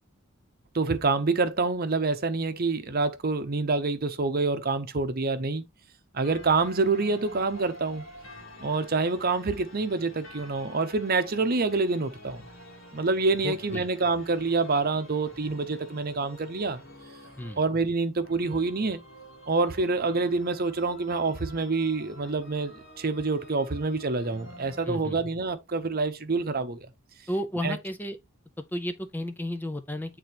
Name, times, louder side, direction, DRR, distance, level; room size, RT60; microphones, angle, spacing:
voice 1, 0.7-5.6 6.1-8.0 8.6-12.4 12.9-16.8 17.6-19.0 19.5-26.8 27.6-27.8, right 3 dB, 45° right, 0.8 m, -27 dB
sound 1, 6.2-24.9, equal, 65° left, 2.0 m, -48 dB
voice 2, 13.4-13.9 17.4-17.6 24.8-25.2 27.3-28.2 28.6-30.2, left 1 dB, 10° left, 0.5 m, -33 dB
8.7 x 3.8 x 3.0 m
head